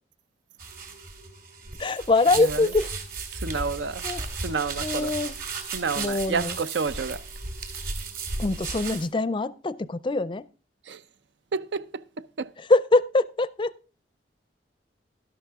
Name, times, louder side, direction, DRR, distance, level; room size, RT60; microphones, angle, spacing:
sound 1, 0.6-9.1, right 4 dB, 50° right, 2.4 m, -35 dB
voice 1, 1.8-2.9 3.5-3.6 4.0-4.3 4.8-5.3 6.0-6.6 8.4-10.4 12.6-13.7, left 2 dB, 25° left, 0.4 m, -24 dB
voice 2, 3.4-4.0 4.4-5.2 5.7-7.2 10.9-11.0 11.5-12.0 12.4-12.5, right 5 dB, 85° right, 0.6 m, -29 dB
12.0 x 11.5 x 3.6 m
head